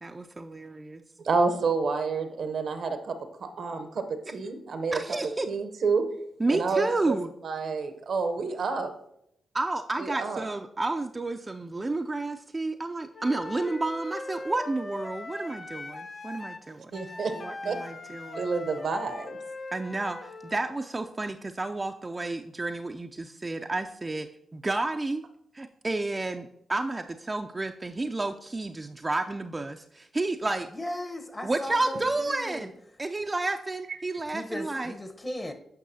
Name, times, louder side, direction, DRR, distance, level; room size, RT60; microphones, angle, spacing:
voice 1, 0.0-1.0 4.9-5.5 6.4-7.3 9.5-17.0 17.4-18.5 19.7-25.2 25.5-30.7 31.4-32.7 33.0-34.9, right 2 dB, 30° right, 0.4 m, -31 dB
voice 2, 1.2-5.0 5.4-6.1 6.5-7.2 7.4-8.9 10.0-10.4 16.9-17.3 17.6-17.8 18.3-19.4, right 4 dB, 70° right, 0.7 m, -29 dB
Wind instrument woodwind instrument, 13.1-20.6, left 2 dB, 45° left, 0.6 m, -40 dB
voice 3, 30.7-32.7 34.3-35.5, left 1 dB, 30° left, 1.0 m, -37 dB
9.1 x 5.3 x 2.7 m
supercardioid pair, 40°, 0 cm